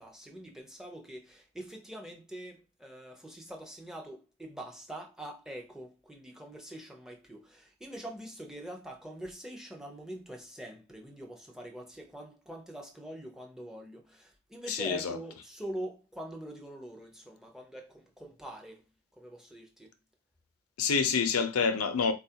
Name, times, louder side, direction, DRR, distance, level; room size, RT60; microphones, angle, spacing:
voice 1, 0.0-18.9 19.2-19.9, right 1 dB, ahead, 0.5 m, -44 dB
voice 2, 14.7-15.2 20.8-22.1, left 5 dB, 85° left, 0.6 m, -27 dB
4.1 x 2.3 x 2.8 m
head